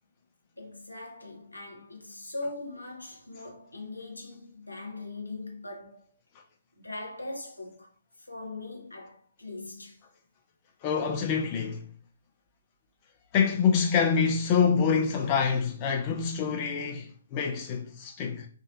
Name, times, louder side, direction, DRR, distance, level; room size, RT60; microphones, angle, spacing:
voice 1, 0.6-6.2 6.7-7.9 8.2-10.0, left 2 dB, 80° left, 1.0 m, -41 dB
voice 2, 10.8-11.9 13.3-18.5, left 6 dB, 30° left, 0.4 m, -26 dB
3.2 x 2.5 x 2.3 m
figure-of-eight pair, 130°, 0 cm